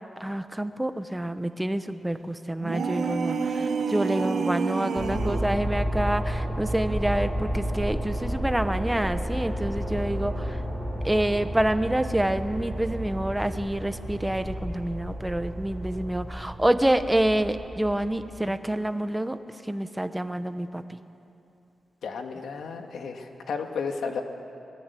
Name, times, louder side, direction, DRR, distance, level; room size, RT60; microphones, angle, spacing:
voice 1, 0.2-10.6 11.0-19.4 19.6-21.0, right 1 dB, 5° right, 9 dB, 0.9 m, -27 dB
sound 1, 2.6-5.6, right 5 dB, 55° right, 1.0 m, -28 dB
sound 2, 4.9-18.5, equal, 10° left, 4.8 m, -32 dB
voice 2, 22.0-24.2, left 5 dB, 80° left, 4 dB, 2.0 m, -33 dB
24.5 x 20.5 x 8.4 m, 2.8 s
wide cardioid pair, 175°, 0 cm